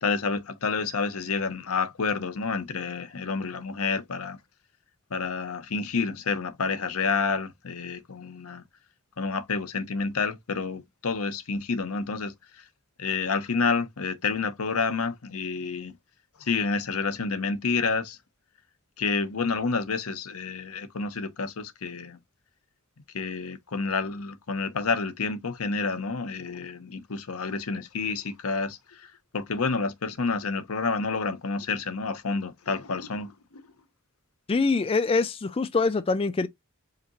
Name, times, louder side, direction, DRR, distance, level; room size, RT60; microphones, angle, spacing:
voice 1, 0.0-4.4 5.1-8.6 9.2-12.3 13.0-15.9 16.4-18.2 19.0-22.2 23.1-28.8 29.3-33.6, left 4 dB, 80° left, 0.8 m, -29 dB
voice 2, 34.5-36.5, left 4 dB, 25° left, 0.3 m, -24 dB
4.9 x 2.8 x 3.0 m
head